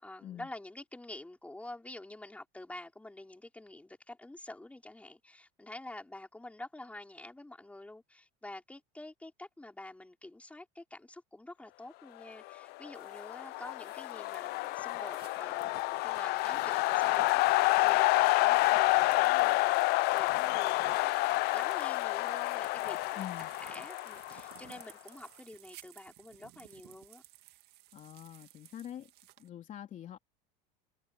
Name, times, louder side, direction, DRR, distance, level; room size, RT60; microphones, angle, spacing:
voice 1, 0.0-23.3 23.6-27.2, left 2 dB, 5° left, 5.0 m, -48 dB
sound 1, 12.9-24.8, left 22 dB, 55° left, 0.5 m, -29 dB
sound 2, 12.9-29.5, right 16 dB, 55° right, 1.9 m, -57 dB
voice 2, 23.2-23.5 27.9-29.1 29.4-30.2, left 11 dB, 40° left, 3.2 m, -45 dB
supercardioid pair, 120°, 20 cm